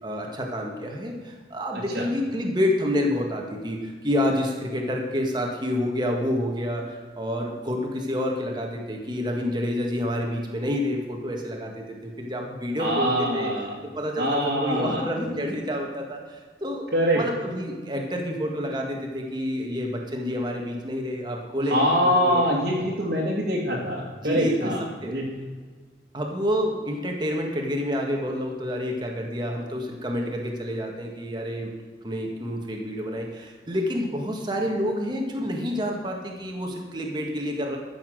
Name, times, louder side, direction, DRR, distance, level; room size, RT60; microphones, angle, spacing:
voice 1, 0.0-13.5 13.9-16.9 17.1-22.5 22.7-22.9 24.2-24.7 25.0-25.1 26.1-31.7 32.0-37.8, equal, 25° right, 1 dB, 1.8 m, -28 dB
voice 2, 1.7-2.1 12.8-13.8 14.2-15.0 16.9-17.2 21.6-25.3, equal, 55° right, -7 dB, 2.1 m, -24 dB
13.5 x 7.3 x 6.4 m, 1.5 s
head